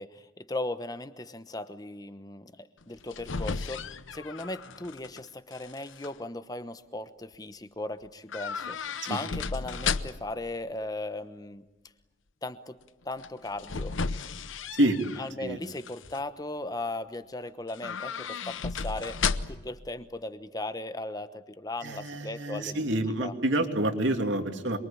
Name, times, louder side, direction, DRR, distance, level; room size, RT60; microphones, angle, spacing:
voice 1, 0.0-11.7 12.4-12.8 13.0-14.0 15.2-22.9 23.2-23.3, left 2 dB, 20° left, 12 dB, 1.1 m, -37 dB
sound 1, 2.8-5.2 5.5-6.1 8.3-10.4 13.2-15.3 15.7-16.2 17.7-19.8 20.0-20.1, left 5 dB, 80° left, 0.9 m, -34 dB
voice 2, 21.8-24.8, right 1 dB, 70° right, 5 dB, 2.8 m, -27 dB
27.0 x 23.0 x 8.7 m, 1.1 s
head